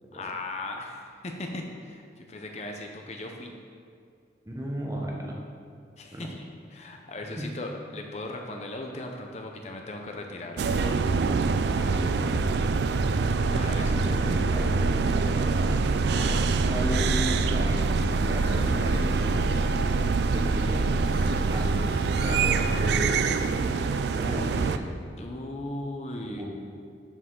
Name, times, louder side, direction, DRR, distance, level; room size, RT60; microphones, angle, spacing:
voice 1, 0.1-3.5 6.0-6.4 6.7-11.0 13.5-13.9 16.1-16.4 25.1-26.4, left 2 dB, 35° left, 2 dB, 0.6 m, -38 dB
voice 2, 4.4-5.4 6.1-6.3 7.4-7.5 11.8-12.4 13.8-15.8 16.7-19.5 20.3-20.8 21.5-24.9 26.3-26.4, equal, 15° right, -1 dB, 0.8 m, -35 dB
sound 1, 10.6-24.8, right 4 dB, 65° right, 0.3 m, -25 dB
sound 2, 18.1-23.7, equal, 50° right, 2.2 m, -42 dB
12.5 x 4.7 x 3.7 m, 2.2 s
head